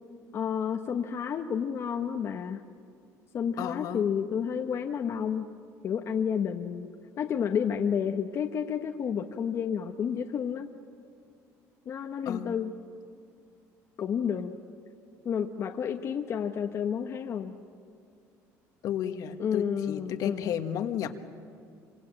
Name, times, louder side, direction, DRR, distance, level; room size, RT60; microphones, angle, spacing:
voice 1, 0.3-2.6 3.3-5.5 5.8-6.9 7.2-10.7 11.9-12.7 14.0-14.6 15.2-17.6 19.4-20.5, left 7 dB, 45° left, 4 dB, 1.1 m, -30 dB
voice 2, 3.6-4.0 12.2-12.5 18.8-21.1, left 9 dB, 60° left, 7 dB, 1.6 m, -33 dB
26.5 x 25.0 x 8.8 m, 2.3 s
cardioid pair, 130°, 7 cm